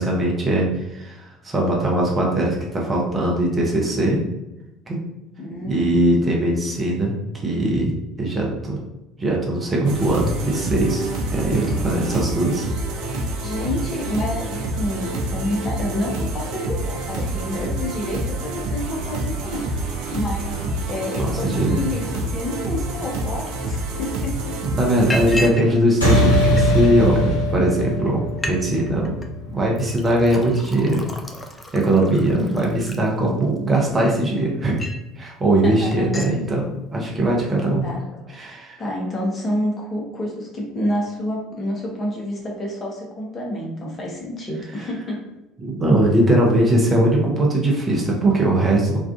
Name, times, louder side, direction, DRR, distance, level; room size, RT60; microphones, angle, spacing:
voice 1, 0.0-4.2 4.9-5.0 5.7-7.9 8.2-8.8 9.2-12.7 13.1-13.3 21.2-21.8 24.6-29.1 29.5-31.0 31.7-34.8 35.2-37.8 38.3-38.8 45.6-49.0, right 1 dB, 25° right, -2 dB, 0.7 m, -20 dB
voice 2, 5.4-5.9 13.4-24.6 25.3-25.8 35.6-36.2 37.8-38.0 38.8-45.2, left 1 dB, 35° left, -2 dB, 0.8 m, -29 dB
sound 1, 9.8-25.5, right 1 dB, 60° right, 0.4 m, -27 dB
Liquid, 23.9-24.0 24.4-24.6 25.1-25.7 26.0-26.9 27.6-27.7 28.0-28.1 28.3-28.6 28.9-29.3 29.8-33.6 34.1-35.1 35.5-35.7 35.9-36.4, left 1 dB, 15° left, 0.4 m, -33 dB
sound 2, 26.0-30.8, equal, 90° left, 0.6 m, -21 dB
2.4 x 2.3 x 2.4 m, 0.95 s
figure-of-eight pair, 60°, 0 cm